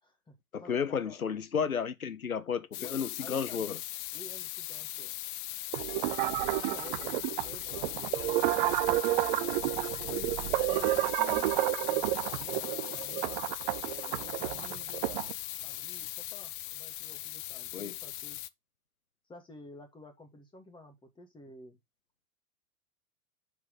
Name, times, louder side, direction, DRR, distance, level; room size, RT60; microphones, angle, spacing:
voice 1, 0.0-1.2 2.8-3.7 4.1-5.1 6.2-9.7 10.7-11.5 11.8-13.4 13.8-15.3 15.6-18.4 19.3-21.8, left 2 dB, 10° left, 2.6 m, -51 dB
voice 2, 0.5-3.8 10.0-10.3 17.7-18.0, left 7 dB, 85° left, 0.9 m, -33 dB
sound 1, 2.7-18.5, left 16 dB, 40° left, 0.6 m, -39 dB
sound 2, 5.7-15.3, right 16 dB, 35° right, 0.6 m, -30 dB
7.4 x 6.0 x 3.9 m
figure-of-eight pair, 100°, 41 cm